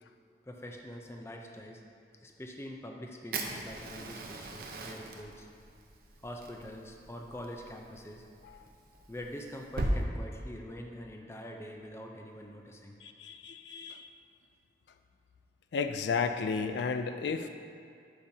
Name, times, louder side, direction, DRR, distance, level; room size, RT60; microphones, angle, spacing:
voice 1, 0.5-1.8 2.2-5.5 6.2-8.2 9.1-13.0, equal, 15° left, 2 dB, 0.5 m, -44 dB
Fire, 3.3-10.0, right 1 dB, 55° right, 0.6 m, -39 dB
voice 2, 13.0-14.1 15.7-17.5, left 5 dB, 75° left, 7 dB, 0.3 m, -33 dB
11.5 x 5.4 x 2.8 m, 2.6 s
head